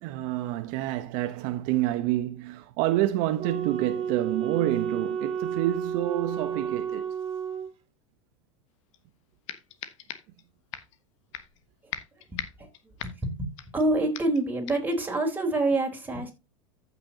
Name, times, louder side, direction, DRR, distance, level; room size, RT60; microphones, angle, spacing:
voice 1, 0.0-7.1, right 14 dB, 55° right, 0.9 m, -28 dB
Wind instrument woodwind instrument, 3.4-7.7, right 7 dB, 35° right, 2.8 m, -31 dB
sound 1, 8.9-9.0 9.5-10.4 10.7-11.0 11.3-11.6 11.9-13.8 14.1-14.4 14.7-15.0, left 10 dB, 70° left, 1.3 m, -39 dB
voice 2, 12.3-12.7 13.0-16.3, right 2 dB, 10° right, 3.7 m, -27 dB
14.5 x 6.1 x 2.8 m
hypercardioid pair, 95°, 17 cm